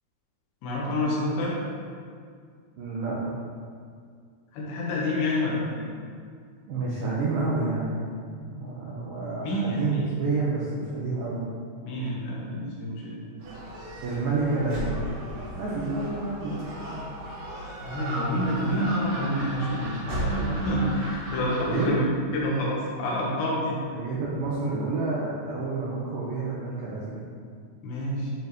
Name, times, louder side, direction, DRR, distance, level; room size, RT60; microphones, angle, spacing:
voice 1, 0.6-1.5 4.5-5.9 9.4-10.0 11.8-13.3 17.8-22.1 22.3-23.8 27.8-28.3, equal, 70° left, -5 dB, 3.2 m, -28 dB
voice 2, 2.8-3.2 6.7-8.1 8.5-11.4 14.0-15.0 15.6-17.0 21.7-21.9 23.9-27.2, right 3 dB, 90° right, -6 dB, 2.0 m, -29 dB
Gull seagull, 13.4-21.9, right 1 dB, 70° right, 4.6 m, -35 dB
12.5 x 5.5 x 3.2 m, 2.1 s
omnidirectional pair, 5.7 m